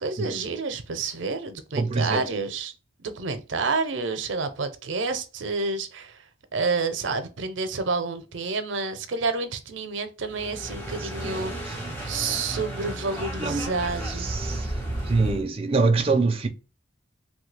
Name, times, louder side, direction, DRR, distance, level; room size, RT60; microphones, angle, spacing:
voice 1, 0.0-2.7 3.0-6.2 6.5-14.3, right 4 dB, 90° right, 0.6 m, -29 dB
voice 2, 1.8-2.2 11.0-12.0 13.4-13.7 14.0-14.7 15.0-16.5, right 3 dB, 30° right, 0.5 m, -25 dB
sound 1, 10.3-15.4, right 1 dB, 10° left, 1.1 m, -33 dB
3.2 x 2.3 x 3.2 m
head